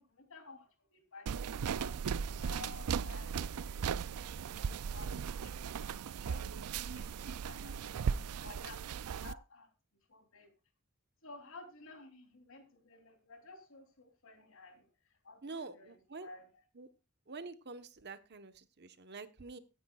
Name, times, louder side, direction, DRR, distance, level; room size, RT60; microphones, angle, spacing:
voice 1, 0.0-4.3 4.5-7.9 8.4-8.8 9.2-9.7 10.1-10.5 11.2-14.9 15.2-16.5, left 3 dB, 65° left, 3.3 m, -54 dB
sound 1, 1.3-9.3, right 6 dB, 90° right, 0.4 m, -37 dB
voice 2, 15.4-16.3 16.7-16.9 17.3-19.6, right 4 dB, 50° right, 1.1 m, -47 dB
16.0 x 10.5 x 2.4 m
head